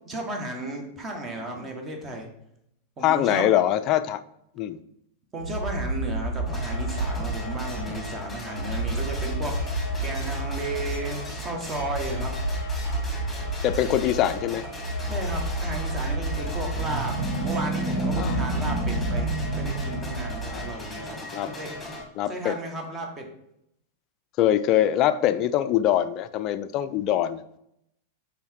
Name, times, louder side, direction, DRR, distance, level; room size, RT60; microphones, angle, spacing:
voice 1, 0.1-2.3 3.0-3.4 5.3-12.3 15.0-21.2 21.5-21.7 22.3-23.3, right 1 dB, 20° right, 2 dB, 1.5 m, -34 dB
voice 2, 3.0-4.2 4.6-4.8 13.6-14.6 16.5-16.6 18.1-18.4 20.5-20.7 21.3-21.5 22.2-22.6 24.4-27.4, left 12 dB, 40° left, 13 dB, 0.4 m, -23 dB
sound 1, 5.4-20.9, right 1 dB, 60° right, 1.5 m, -31 dB
sound 2, 6.5-22.0, left 2 dB, 10° left, 1.8 m, -38 dB
sound 3, 16.3-20.7, right 3 dB, 45° right, 0.8 m, -30 dB
5.5 x 4.2 x 4.5 m, 0.77 s
figure-of-eight pair, 90°, 0 cm